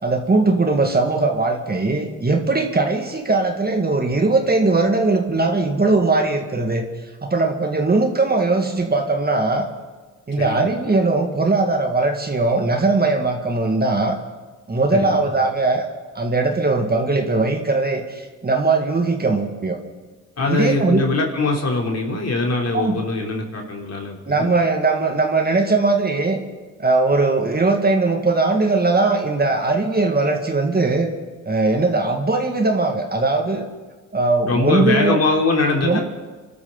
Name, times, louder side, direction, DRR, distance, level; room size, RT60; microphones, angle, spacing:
voice 1, 0.0-6.9 7.2-9.7 10.3-14.2 14.7-15.9 16.2-19.8 20.5-21.0 22.7-23.0 24.3-26.4 26.8-31.1 31.5-33.7 34.1-35.2 35.8-36.0, right 3 dB, 30° right, 4 dB, 1.9 m, -19 dB
voice 2, 14.9-15.3 20.4-24.5 34.5-36.0, left 3 dB, 45° left, 0 dB, 3.5 m, -22 dB
25.5 x 12.5 x 4.0 m, 1.3 s
supercardioid pair, 65°, 34 cm